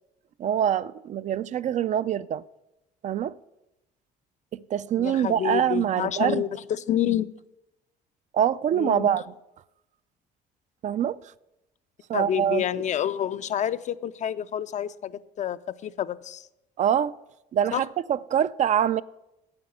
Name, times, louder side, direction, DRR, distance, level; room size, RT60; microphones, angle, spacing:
voice 1, 0.4-2.4 3.0-3.3 4.5-6.4 8.3-9.2 10.8-11.2 12.1-12.7 16.8-17.2 17.5-19.0, right 9 dB, 45° right, 0.4 m, -24 dB
voice 2, 5.0-7.3 8.7-9.2 12.1-16.5 17.7-17.8, left 10 dB, 45° left, 0.5 m, -28 dB
9.6 x 8.3 x 7.8 m
cardioid pair, 110°, 17 cm